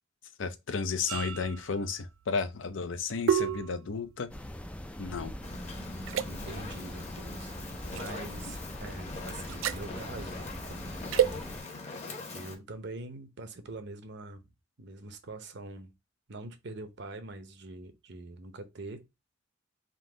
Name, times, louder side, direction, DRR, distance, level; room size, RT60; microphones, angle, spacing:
voice 1, 0.4-4.3 5.0-5.4, left 5 dB, 70° left, 0.6 m, -33 dB
sound 1, 1.1-5.6 6.0-6.3 8.0-8.2 9.4-9.9 11.1-11.4, right 8 dB, 80° right, 0.4 m, -31 dB
sound 2, 4.3-11.6, left 1 dB, 5° left, 0.3 m, -42 dB
Fire, 5.4-12.5, left 3 dB, 35° left, 1.0 m, -42 dB
voice 2, 6.3-11.1 12.3-14.5 14.8-15.9 16.3-19.1, right 2 dB, 60° right, 0.7 m, -44 dB
3.8 x 2.7 x 3.8 m
head